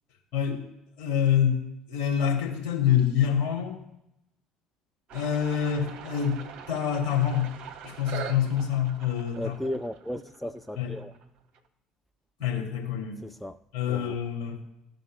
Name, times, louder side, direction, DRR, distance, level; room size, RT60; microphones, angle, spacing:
voice 1, 0.3-0.6 1.0-3.8 5.1-7.5 7.8-9.7 10.7-10.9 12.4-13.2 13.7-14.6, left 9 dB, 55° left, 3.3 m, -26 dB
sound 1, 5.1-11.6, right 8 dB, 50° right, 1.1 m, -43 dB
voice 2, 9.4-11.1 13.2-13.6 13.9-14.2, equal, 5° left, 0.4 m, -35 dB
15.0 x 5.2 x 2.5 m
figure-of-eight pair, 60°, 2 cm